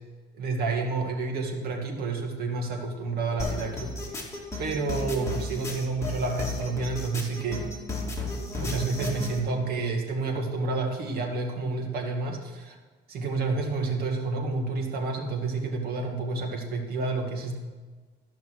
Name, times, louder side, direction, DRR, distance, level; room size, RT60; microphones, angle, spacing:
voice 1, 0.3-4.2 4.6-7.7 8.5-12.8 13.1-17.6, right 3 dB, 65° right, 2 dB, 2.2 m, -29 dB
sound 1, 3.4-9.4, left 2 dB, 15° left, 2.3 m, -33 dB
12.5 x 5.7 x 6.3 m, 1.3 s
cardioid pair, 110°, 17 cm